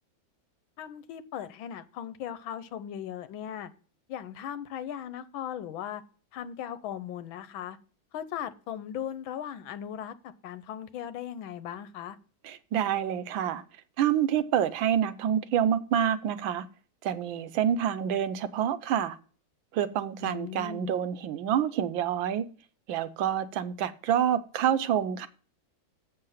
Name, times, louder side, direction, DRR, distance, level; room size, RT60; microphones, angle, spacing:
voice 1, 0.8-3.7 4.1-6.0 6.3-7.8 8.1-12.2 20.2-20.9, left 9 dB, 90° left, 1.6 m, -38 dB
voice 2, 12.4-13.6 14.0-16.6 17.0-19.2 19.7-22.4 22.9-25.3, right 9 dB, 80° right, 1.5 m, -27 dB
7.8 x 6.6 x 5.6 m
omnidirectional pair, 2.1 m